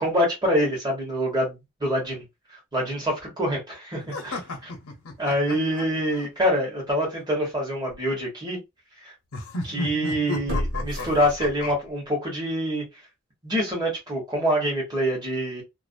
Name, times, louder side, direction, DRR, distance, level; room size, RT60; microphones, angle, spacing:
voice 1, 0.0-2.2 2.7-4.7 5.2-8.6 9.0-9.1 9.6-12.9 13.4-15.6, equal, 20° right, 1.0 m, -26 dB
sound 1, 4.1-6.3 9.3-11.7, left 2 dB, 90° left, 0.8 m, -33 dB
sound 2, 7.2-7.3 7.9-8.0 10.5-11.9 12.3-12.4, equal, 50° right, 1.3 m, -31 dB
2.5 x 2.0 x 2.5 m
head